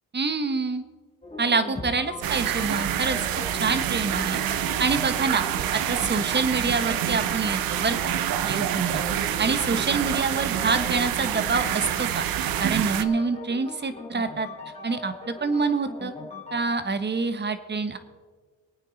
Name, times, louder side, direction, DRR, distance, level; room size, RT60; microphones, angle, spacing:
voice 1, 0.1-0.8 1.4-3.2 3.5-5.4 5.7-8.2 8.4-14.5 14.8-16.1 16.5-18.0, right 4 dB, 30° right, 11 dB, 1.2 m, -26 dB
sound 1, 1.2-16.7, left 3 dB, 20° left, 3.6 m, -40 dB
sound 2, 2.2-13.0, right 11 dB, 90° right, 0.8 m, -27 dB
22.5 x 9.1 x 4.1 m, 1.5 s
cardioid pair, 100°, 34 cm